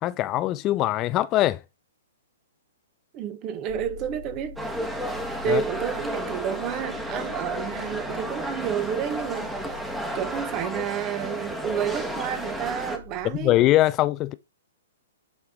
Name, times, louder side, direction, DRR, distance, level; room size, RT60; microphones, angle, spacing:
voice 1, 0.0-1.6 5.5-5.6 13.3-14.3, left 15 dB, 30° left, 0.6 m, -22 dB
voice 2, 3.1-4.6 5.4-9.5 10.1-13.5, right 8 dB, 30° right, 1.0 m, -30 dB
sound 1, 3.7-13.7, left 7 dB, 60° left, 1.4 m, -45 dB
sound 2, 4.6-13.0, equal, 5° right, 1.3 m, -32 dB
8.3 x 3.6 x 3.8 m
hypercardioid pair, 130°, 0 cm